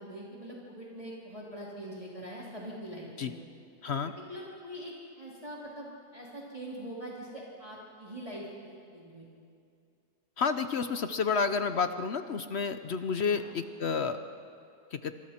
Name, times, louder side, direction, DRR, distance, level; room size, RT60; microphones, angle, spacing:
voice 1, 0.0-3.4 4.0-9.3 13.3-13.5, right 1 dB, 20° right, -5 dB, 3.0 m, -43 dB
voice 2, 10.4-14.2 14.9-15.1, left 5 dB, 55° left, 9 dB, 0.9 m, -30 dB
26.5 x 26.0 x 4.4 m, 2.4 s
omnidirectional pair, 1.7 m